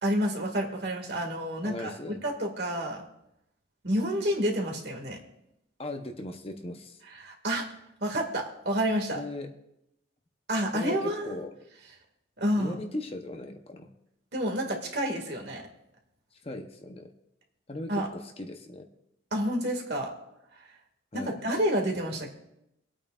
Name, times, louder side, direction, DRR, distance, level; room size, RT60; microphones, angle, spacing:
voice 1, 0.0-3.0 3.8-5.2 7.1-7.7 8.0-9.2 10.5-11.4 12.4-12.8 14.3-15.6 17.9-18.1 19.3-20.1 20.6-20.7 21.1-22.4, equal, 60° right, 1 dB, 2.0 m, -29 dB
voice 2, 1.6-2.2 5.8-7.0 9.1-9.5 10.7-11.5 12.6-13.9 16.4-17.1 17.7-18.9 21.1-21.4, left 1 dB, 30° left, 5 dB, 0.8 m, -38 dB
25.5 x 8.8 x 2.4 m, 0.82 s
head